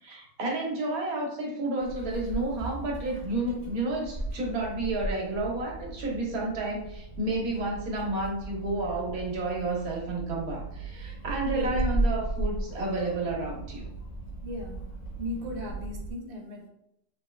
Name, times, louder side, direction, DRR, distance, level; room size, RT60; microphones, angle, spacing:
voice 1, 0.0-13.9, right 2 dB, 80° right, -1 dB, 1.4 m, -31 dB
Meow, 1.8-15.7, right 1 dB, 40° left, 1.3 m, -36 dB
sound 1, 2.4-16.1, right 4 dB, 80° left, 1.4 m, -42 dB
voice 2, 14.4-14.8 15.2-16.7, left 1 dB, 60° right, 1 dB, 0.6 m, -36 dB
3.6 x 2.3 x 3.1 m, 0.80 s
omnidirectional pair, 1.5 m